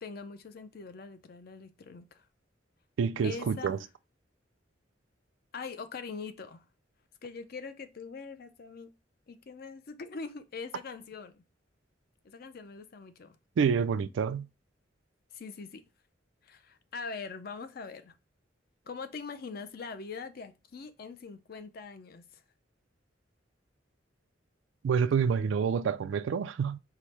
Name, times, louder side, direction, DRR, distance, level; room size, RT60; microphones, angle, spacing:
voice 1, 0.0-2.3 3.2-3.9 5.5-6.6 7.2-8.9 9.3-11.4 12.2-13.4 15.3-15.8 16.4-18.1 18.9-22.3, left 4 dB, 55° left, 0.5 m, -42 dB
voice 2, 3.0-3.8 13.6-14.5 24.8-26.8, right 6 dB, 85° right, 0.3 m, -28 dB
4.8 x 2.0 x 4.2 m
head